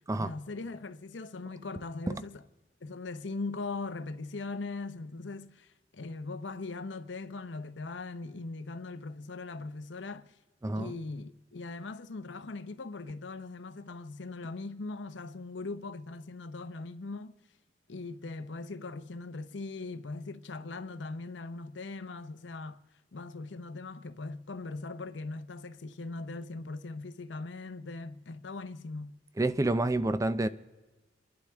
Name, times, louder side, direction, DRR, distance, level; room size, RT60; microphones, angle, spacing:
voice 1, 0.1-2.4 2.8-10.3 10.7-17.3 17.9-22.8 23.1-29.2, left 3 dB, 75° left, 0.8 m, -40 dB
voice 2, 10.6-10.9 29.4-30.5, right 2 dB, 20° right, 0.5 m, -28 dB
29.5 x 11.5 x 3.5 m
head